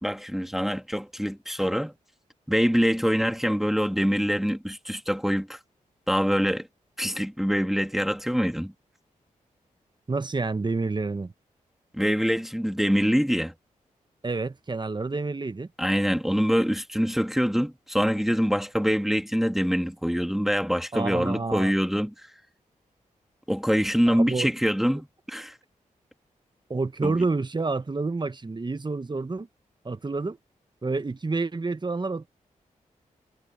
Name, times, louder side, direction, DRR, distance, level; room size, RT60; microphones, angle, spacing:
voice 1, 0.0-1.9 2.5-5.6 6.1-6.7 7.0-8.7 11.9-13.5 15.8-22.3 23.5-25.6 27.0-27.2, equal, ahead, 2.0 m, -25 dB
voice 2, 10.1-11.3 14.2-15.7 20.9-21.7 24.1-24.5 26.7-29.5 29.8-30.4 30.8-32.3, right 3 dB, 30° right, 1.2 m, -28 dB
cardioid pair, 50°, 14 cm